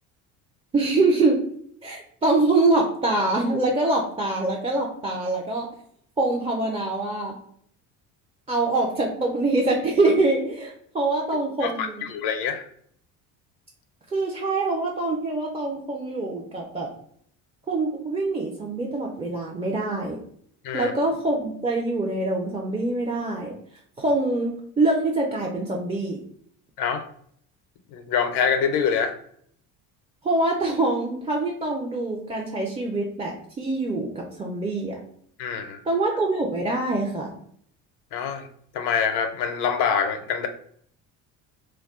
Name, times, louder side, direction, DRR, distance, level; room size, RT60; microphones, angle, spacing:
voice 1, 0.7-1.5 1.8-5.7 6.2-7.3 8.5-12.0 14.1-16.9 17.7-20.2 20.7-23.5 24.0-26.2 30.2-35.0 35.9-37.3, right 2 dB, 15° right, -1 dB, 0.4 m, -24 dB
voice 2, 11.6-12.6 20.6-20.9 26.8-27.0 27.9-29.1 35.4-35.8 38.1-38.5 38.7-40.5, left 6 dB, 75° left, 8 dB, 0.5 m, -25 dB
2.3 x 2.2 x 3.5 m, 0.63 s
supercardioid pair, 85°, 41 cm